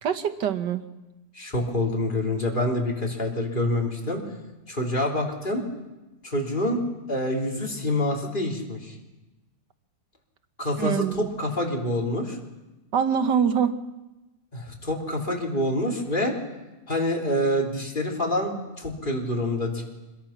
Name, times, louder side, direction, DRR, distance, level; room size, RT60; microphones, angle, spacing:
voice 1, 0.0-0.8 10.8-11.3 12.9-13.8, right 7 dB, 85° right, 9 dB, 1.8 m, -24 dB
voice 2, 1.3-4.2 4.7-5.6 6.2-6.8 7.1-8.9 10.6-12.4 14.5-16.3 16.9-19.8, left 1 dB, 30° left, -1 dB, 3.9 m, -26 dB
26.0 x 21.5 x 5.9 m, 1.1 s
omnidirectional pair, 1.8 m